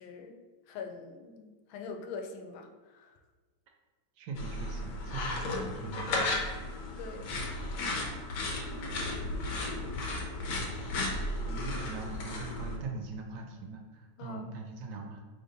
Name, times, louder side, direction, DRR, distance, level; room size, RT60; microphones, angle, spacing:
voice 1, 0.0-3.2 7.0-7.3 14.2-14.5, left 5 dB, 90° left, 4 dB, 1.4 m, -44 dB
voice 2, 4.2-6.3 10.3-10.5 11.1-15.2, right 3 dB, 70° right, 2 dB, 1.1 m, -42 dB
sound 1, 4.4-12.8, left 2 dB, 65° left, 1.4 m, -34 dB
5.0 x 3.8 x 2.6 m, 1.3 s
omnidirectional pair, 2.2 m